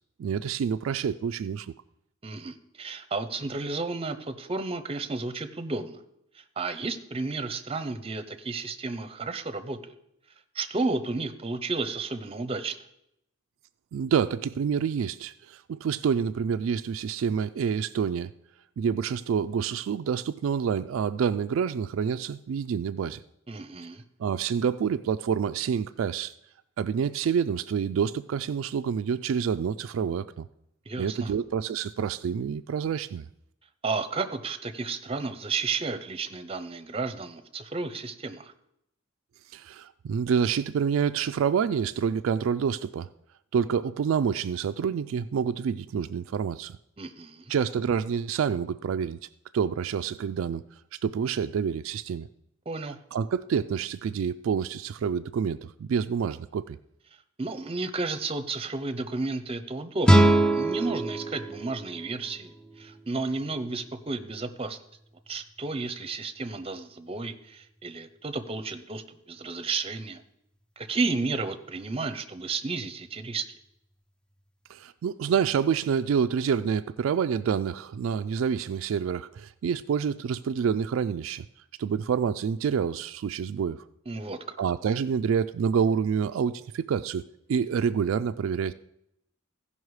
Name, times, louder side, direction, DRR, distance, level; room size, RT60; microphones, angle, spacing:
voice 1, 0.2-1.7 13.9-18.3 18.8-23.2 24.2-26.3 26.8-30.5 31.0-33.3 39.5-43.1 43.5-46.8 47.5-49.2 49.5-50.6 51.0-52.3 53.1-56.8 74.7-81.4 81.8-83.8 84.6-87.2 87.5-88.7, right 7 dB, 70° right, 10 dB, 0.3 m, -27 dB
voice 2, 2.2-6.0 6.6-9.9 10.5-12.8 23.5-24.0 30.9-31.3 33.8-38.5 47.0-47.5 52.7-53.0 57.4-60.2 60.5-62.5 62.8-64.8 65.3-70.2 70.8-73.4 84.1-84.4, right 3 dB, 30° right, 9 dB, 0.7 m, -32 dB
sound 1, 60.0-63.1, right 1 dB, 5° left, 0.5 m, -23 dB
15.5 x 5.6 x 4.7 m, 0.79 s
head